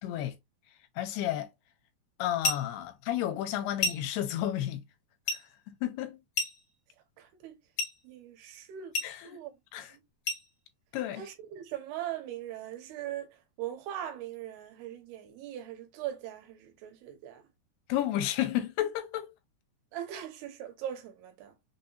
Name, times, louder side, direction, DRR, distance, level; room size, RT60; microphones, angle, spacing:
voice 1, 0.0-0.4 1.0-1.5 2.2-4.8 5.3-5.4 5.7-6.2 9.0-9.4 9.7-9.9 10.9-11.3 17.9-19.3, left 12 dB, 90° left, 2.7 m, -32 dB
sound 1, 2.4-2.7 3.8-4.2 5.3-5.5 6.3-6.7 7.8-8.0 8.9-9.2 10.2-10.5, left 3 dB, 60° left, 1.3 m, -31 dB
voice 2, 7.2-7.6 8.0-8.9 9.2-9.5 9.9-10.0 11.2-17.4 19.9-21.5, right 11 dB, 80° right, 2.8 m, -40 dB
6.1 x 2.8 x 2.6 m
omnidirectional pair, 4.7 m